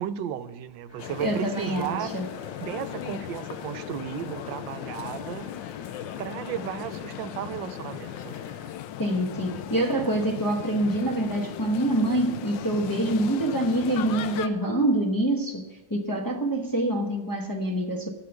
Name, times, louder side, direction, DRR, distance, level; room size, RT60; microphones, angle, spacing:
voice 1, 0.0-2.1 2.6-5.5 6.2-8.4, right 10 dB, 80° right, 1.4 m, -34 dB
sound 1, 0.9-8.7, equal, 15° right, 3.6 m, -48 dB
sound 2, 1.0-14.5, left 11 dB, 80° left, 1.3 m, -37 dB
voice 2, 1.2-2.3 9.0-18.1, right 1 dB, 25° left, 0.4 m, -26 dB
11.5 x 6.6 x 7.9 m
omnidirectional pair, 2.1 m